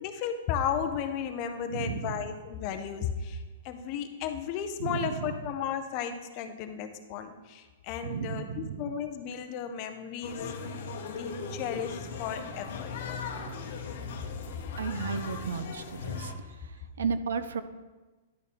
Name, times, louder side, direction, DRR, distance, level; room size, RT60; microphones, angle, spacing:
voice 1, 0.0-10.5 11.0-13.3, left 8 dB, 30° left, 8 dB, 0.6 m, -34 dB
voice 2, 1.7-2.2 4.8-5.3 8.0-8.9 13.3-13.6 14.8-17.6, right 6 dB, 90° right, 12 dB, 0.5 m, -34 dB
sound 1, 10.2-16.3, left 5 dB, 55° left, 0.8 m, -38 dB
10.5 x 4.2 x 3.6 m, 1.2 s
hypercardioid pair, 165°, 0 cm